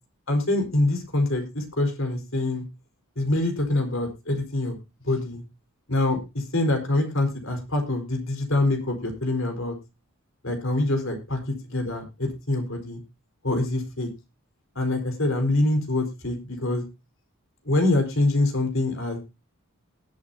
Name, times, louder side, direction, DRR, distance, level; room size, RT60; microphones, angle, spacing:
voice 1, 0.3-2.6 3.2-4.7 5.0-5.4 5.9-9.7 10.4-11.4 11.7-13.0 13.4-14.1 14.7-16.8 17.6-19.2, left 2 dB, 60° left, 5 dB, 4.6 m, -25 dB
20.0 x 8.9 x 2.7 m, 0.26 s
head